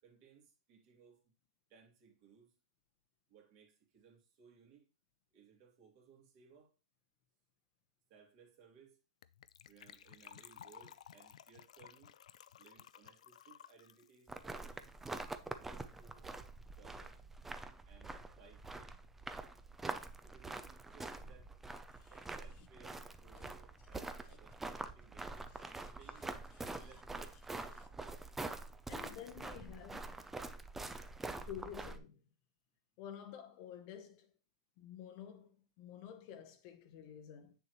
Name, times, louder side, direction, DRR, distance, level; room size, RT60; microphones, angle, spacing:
voice 1, 0.0-1.3 1.7-2.6 3.3-4.9 5.3-6.7 8.1-9.0 9.7-12.1 12.6-14.9 15.4-17.2 17.8-19.0 20.2-21.5 22.1-26.3 26.7-27.9, right 6 dB, 45° right, 2.4 m, -63 dB
Gurgling / Trickle dribble / Fill (with liquid), 9.2-15.5 15.7-15.8 16.0-16.2 16.5-16.6, left 10 dB, 80° left, 0.4 m, -57 dB
sound 1, 14.3-32.0, right 3 dB, 5° right, 0.5 m, -46 dB
voice 2, 25.5-26.3 26.5-26.9 27.7-27.9 28.2-28.3 28.9-30.2 31.3-32.2 33.0-34.3 34.8-37.5, left 9 dB, 45° left, 0.9 m, -51 dB
7.7 x 6.8 x 3.0 m
hypercardioid pair, 135°, 4 cm